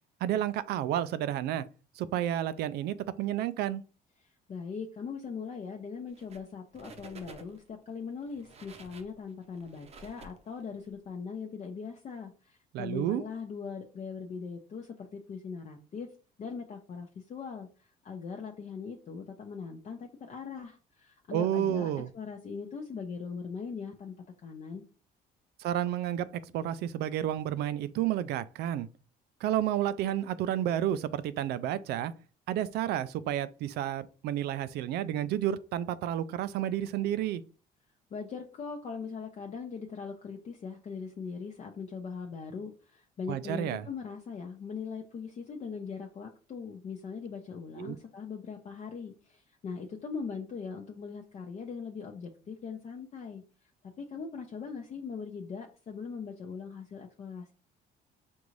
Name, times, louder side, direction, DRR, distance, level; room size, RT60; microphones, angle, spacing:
voice 1, 0.2-1.7 2.0-3.8 12.7-13.2 21.3-22.1 25.6-26.3 26.5-28.9 29.4-32.1 32.5-37.4 43.3-43.9 47.8-48.0, right 11 dB, 75° right, 0.4 m, -31 dB
voice 2, 4.2-16.1 16.4-24.1 24.4-24.8 38.1-53.7 54.0-57.5, left 5 dB, 40° left, 0.6 m, -40 dB
sound 1, 6.1-6.5 6.7-7.7 8.2-10.9, right 4 dB, 40° right, 0.7 m, -51 dB
5.3 x 2.5 x 3.1 m
cardioid pair, 110°, 17 cm